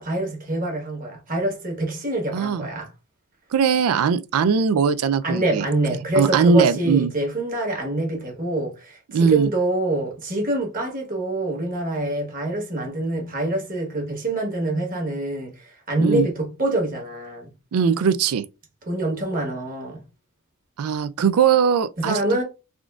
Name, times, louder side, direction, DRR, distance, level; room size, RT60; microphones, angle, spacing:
voice 1, 0.0-2.9 5.2-17.5 18.9-20.0 22.0-22.4, right 2 dB, 40° right, 1.2 m, -25 dB
voice 2, 2.3-2.6 3.5-5.7 6.2-7.1 9.1-9.5 16.0-16.3 17.7-18.4 20.8-22.2, right 6 dB, 80° right, 0.4 m, -20 dB
3.6 x 2.4 x 2.3 m
head